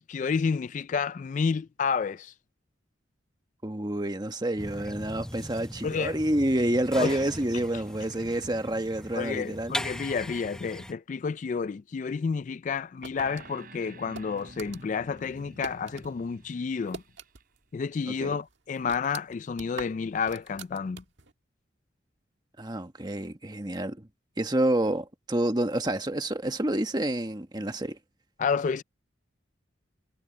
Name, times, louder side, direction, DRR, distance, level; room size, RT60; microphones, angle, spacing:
voice 1, 0.0-2.3 5.8-6.2 7.0-7.2 9.1-17.0 17.7-21.0 28.4-28.8, left 5 dB, 40° left, 0.3 m, -30 dB
voice 2, 3.6-9.8 18.1-18.4 22.6-24.1 24.4-28.0, right 1 dB, 20° right, 1.3 m, -28 dB
sound 1, 4.6-10.9, left 1 dB, 5° left, 0.8 m, -39 dB
sound 2, 13.0-16.1 16.4-17.7 17.9-18.0 18.5-21.3, right 4 dB, 70° right, 1.7 m, -44 dB
sound 3, 13.2-17.4, right 2 dB, 50° right, 7.2 m, -50 dB
head